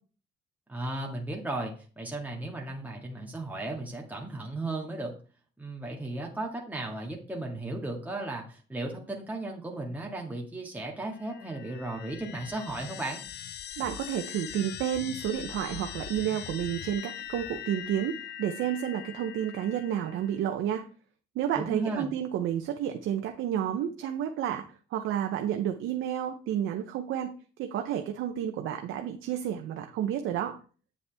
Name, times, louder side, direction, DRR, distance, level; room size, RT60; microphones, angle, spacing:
voice 1, 0.7-5.1 5.6-13.2 21.6-22.1, right 2 dB, 10° right, -1 dB, 1.8 m, -35 dB
sound 1, 11.1-20.4, left 11 dB, 60° left, 0.5 m, -42 dB
voice 2, 13.8-20.8 21.3-24.6 24.9-27.3 27.6-30.5, right 10 dB, 85° right, 5 dB, 0.7 m, -31 dB
8.4 x 6.9 x 3.4 m, 0.38 s
cardioid pair, 90°, 20 cm